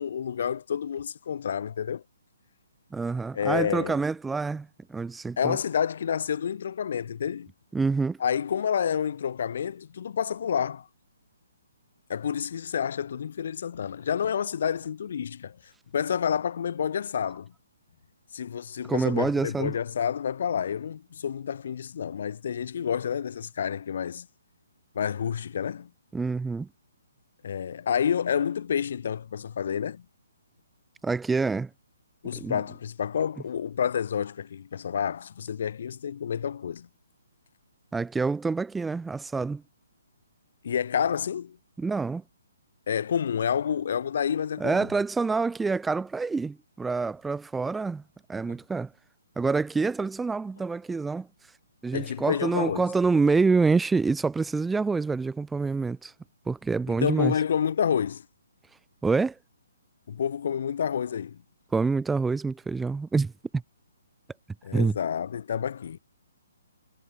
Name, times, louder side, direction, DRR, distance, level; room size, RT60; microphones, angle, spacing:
voice 1, 0.0-2.0 3.3-4.0 5.4-7.5 8.2-10.9 12.1-15.6 15.9-17.5 18.3-24.3 24.9-25.9 27.4-30.0 32.2-36.9 40.6-41.6 42.9-44.9 51.9-52.9 56.9-58.2 60.1-61.4 64.6-66.0, left 8 dB, 55° left, 1.4 m, -29 dB
voice 2, 2.9-5.6 7.7-8.2 18.9-19.7 26.1-26.7 31.0-31.7 32.4-32.6 37.9-39.6 41.8-42.2 44.6-48.0 48.3-48.9 49.4-51.3 51.8-56.1 56.5-57.3 59.0-59.4 61.7-63.3 64.7-65.0, right 4 dB, 5° right, 0.6 m, -26 dB
figure-of-eight pair, 135°, 0 cm